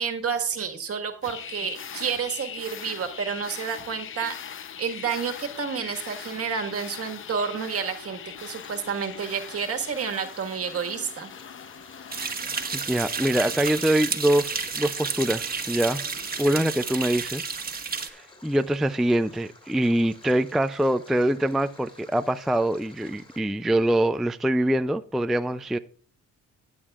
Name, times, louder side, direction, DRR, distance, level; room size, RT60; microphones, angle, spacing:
voice 1, 0.0-4.4 4.8-11.3, right 6 dB, 50° right, 5 dB, 1.6 m, -30 dB
sound 1, 1.2-16.9, left 8 dB, 45° left, 0.7 m, -42 dB
Stream, 8.4-23.4, left 2 dB, 15° left, 2.7 m, -52 dB
sound 2, 12.1-18.1, right 5 dB, 30° right, 1.3 m, -31 dB
voice 2, 12.7-16.0 16.4-17.6 18.0-25.8, right 1 dB, ahead, 11 dB, 0.3 m, -24 dB
16.0 x 8.3 x 2.4 m, 0.43 s
cardioid pair, 90°, 30 cm